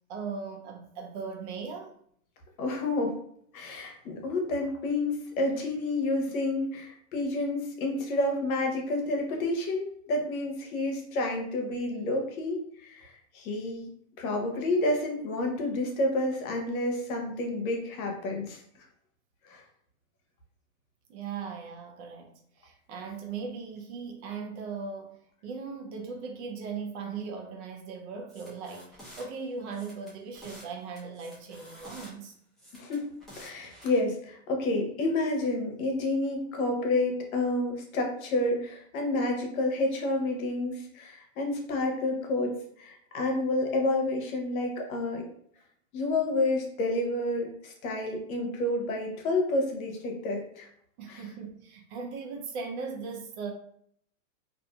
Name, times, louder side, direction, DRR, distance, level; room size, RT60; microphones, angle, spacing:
voice 1, 0.1-1.9 21.1-32.4 51.0-53.5, right 5 dB, 50° right, 0.7 m, -38 dB
voice 2, 2.6-3.2 3.5-13.9 14.2-18.6 19.4-19.6 32.7-45.2 45.9-50.7 51.1-51.2, left 2 dB, 70° left, 0.9 m, -29 dB
sound 1, 28.3-29.3 29.7-30.7 31.0-32.1 32.6-34.0, equal, ahead, 0.5 m, -50 dB
2.6 x 2.6 x 2.3 m
hypercardioid pair, 130°, 44 cm